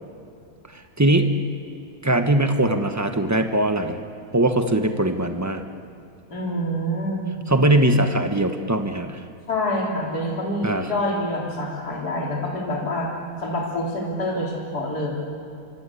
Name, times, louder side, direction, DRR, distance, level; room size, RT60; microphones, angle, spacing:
voice 1, 1.0-1.3 2.0-4.0 4.3-5.6 7.5-9.2 10.6-10.9, right 1 dB, 10° right, 6 dB, 0.9 m, -20 dB
voice 2, 6.3-7.5 9.5-13.1 13.4-15.1, left 1 dB, 50° left, -2 dB, 4.1 m, -26 dB
26.0 x 24.0 x 8.5 m, 2.4 s
omnidirectional pair, 2.2 m